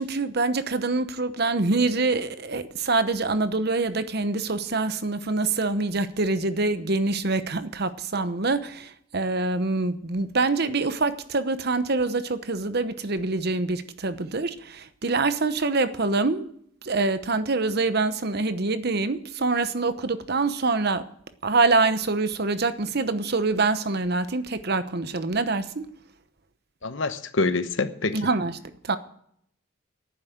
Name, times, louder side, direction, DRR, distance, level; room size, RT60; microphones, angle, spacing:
voice 1, 0.0-16.5 16.8-21.0 21.4-25.9 28.1-28.5 28.8-29.0, right 3 dB, 50° right, 1.0 m, -25 dB
voice 2, 26.8-28.3, left 3 dB, 65° left, 1.0 m, -26 dB
11.5 x 9.6 x 8.0 m
head